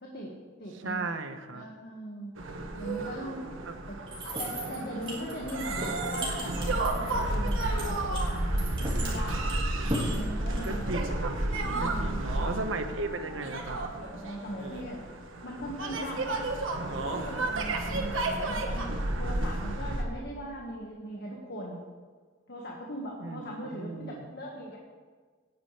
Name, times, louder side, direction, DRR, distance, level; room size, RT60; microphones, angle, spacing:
voice 1, 0.0-2.4 2.8-3.5 3.9-4.0 4.4-8.7 9.0-9.5 10.0-12.2 14.2-16.5 17.0-21.8 22.5-24.8, equal, 55° left, -2 dB, 1.7 m, -40 dB
voice 2, 0.7-1.7 3.7-3.8 9.9-11.4 11.8-13.8 23.2-24.3, right 3 dB, 75° right, 8 dB, 1.0 m, -36 dB
sound 1, 2.4-20.0, right 2 dB, 90° right, 1.5 m, -32 dB
sound 2, 4.1-11.0, right 1 dB, 30° right, 3.2 m, -37 dB
Wind instrument woodwind instrument, 9.7-15.1, left 2 dB, 25° left, 2.7 m, -49 dB
18.0 x 9.9 x 3.4 m, 1.5 s
head